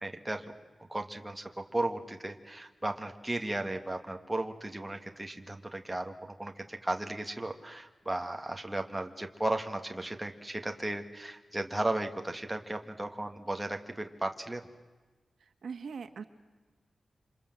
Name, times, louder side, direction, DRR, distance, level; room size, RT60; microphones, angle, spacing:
voice 1, 0.0-0.5 0.9-14.7, right 1 dB, 10° right, 4 dB, 1.6 m, -35 dB
voice 2, 15.4-16.2, right 5 dB, 75° right, 8 dB, 1.6 m, -41 dB
27.5 x 26.5 x 7.7 m, 1.3 s
wide cardioid pair, 165°, 0 cm